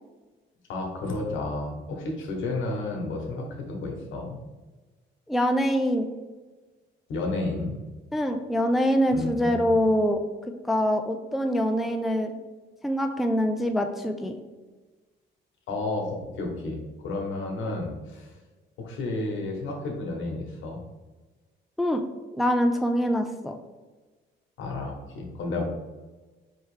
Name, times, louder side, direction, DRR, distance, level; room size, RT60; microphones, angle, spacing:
voice 1, 0.7-4.4 7.1-7.8 9.1-9.8 15.7-16.8 17.0-18.4 18.8-20.8 24.6-25.6, left 2 dB, 80° left, 1 dB, 1.1 m, -31 dB
voice 2, 5.3-6.1 8.1-10.2 10.7-12.3 12.8-14.4 21.8-22.0 22.3-23.5, equal, ahead, 5 dB, 0.3 m, -24 dB
4.4 x 3.0 x 3.2 m, 1.2 s
cardioid pair, 90°, 20 cm